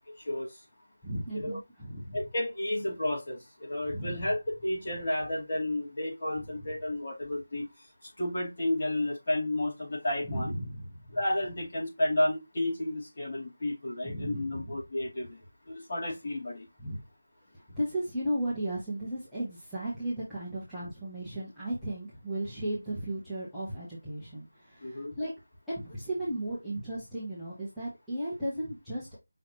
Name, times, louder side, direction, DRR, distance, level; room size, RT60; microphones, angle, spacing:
voice 1, 1.0-2.2 3.9-4.3 6.6-6.7 10.2-11.2 14.0-14.7 16.8-17.0 17.5-25.3 25.7-29.2, right 1 dB, ahead, 1.0 m, -35 dB
voice 2, 2.1-7.7 8.2-10.5 11.1-15.4 15.7-16.6 24.8-25.1, left 1 dB, 35° left, 2.5 m, -31 dB
5.7 x 3.2 x 2.8 m
figure-of-eight pair, 175°, 0 cm